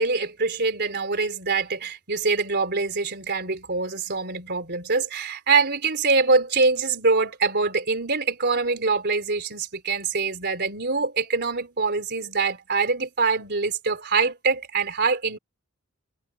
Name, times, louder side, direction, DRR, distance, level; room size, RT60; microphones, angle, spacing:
voice 1, 0.0-15.4, right 4 dB, 50° right, 3.8 m, -24 dB
open air
head